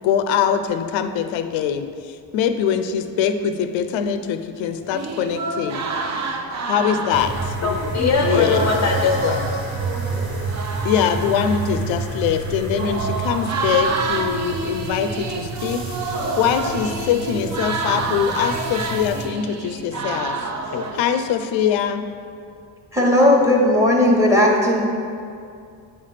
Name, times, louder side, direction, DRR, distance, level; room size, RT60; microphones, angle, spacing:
voice 1, 0.0-5.8 6.1-6.2 6.7-7.5 8.2-8.7 10.8-20.5 20.9-22.0, left 8 dB, 85° left, 9 dB, 0.6 m, -23 dB
sound 1, 4.9-21.1, right 3 dB, 40° right, 0.6 m, -28 dB
sound 2, 7.1-19.3, right 3 dB, 75° right, 1.7 m, -29 dB
voice 2, 7.6-9.4 20.6-20.8, left 4 dB, 40° left, 2 dB, 0.5 m, -21 dB
voice 3, 22.9-24.8, left 1 dB, 5° right, -1 dB, 1.1 m, -16 dB
9.1 x 3.3 x 5.7 m, 2.4 s
cardioid pair, 120°, 45 cm